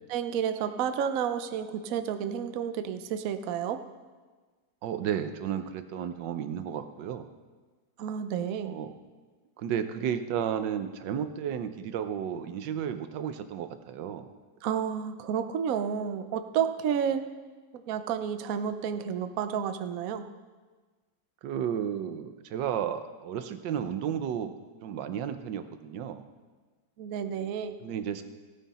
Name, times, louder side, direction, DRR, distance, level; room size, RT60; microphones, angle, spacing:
voice 1, 0.1-3.8 8.0-8.7 14.6-17.2 17.9-20.3 27.0-27.8, right 8 dB, 65° right, 9 dB, 1.0 m, -31 dB
voice 2, 4.8-7.3 8.6-8.9 9.6-14.3 21.4-24.5 24.8-26.2 27.8-28.2, right 9 dB, 85° right, 9 dB, 1.4 m, -33 dB
15.5 x 9.2 x 4.2 m, 1.4 s
omnidirectional pair, 1.9 m